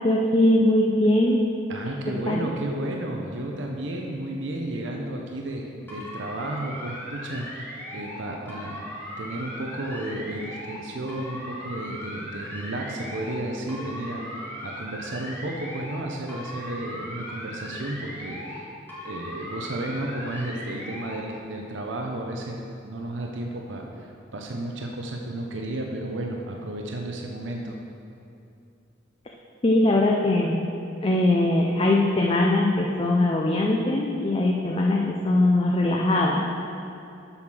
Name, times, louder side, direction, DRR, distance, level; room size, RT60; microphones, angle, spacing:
voice 1, 0.0-1.4 2.3-2.5 29.6-30.6 31.0-36.4, left 1 dB, 30° left, -1 dB, 0.5 m, -21 dB
voice 2, 1.7-8.9 9.2-18.7 19.0-27.8, right 1 dB, 75° right, 1 dB, 0.8 m, -33 dB
sound 1, 5.9-8.2 8.5-10.8 11.1-13.4 13.7-16.0 16.3-18.6 18.9-21.2, equal, 10° left, 1.3 m, -38 dB
7.8 x 5.8 x 6.2 m, 2.7 s
head